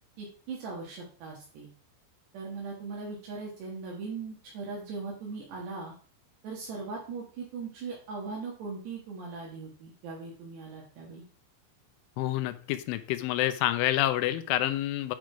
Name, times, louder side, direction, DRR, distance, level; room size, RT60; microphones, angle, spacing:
voice 1, 0.2-1.7 2.3-5.9 6.4-11.2, right 4 dB, 65° right, -3 dB, 3.5 m, -39 dB
voice 2, 12.2-15.2, left 14 dB, 85° left, 11 dB, 3.1 m, -28 dB
9.6 x 5.0 x 4.6 m, 0.43 s
omnidirectional pair, 5.6 m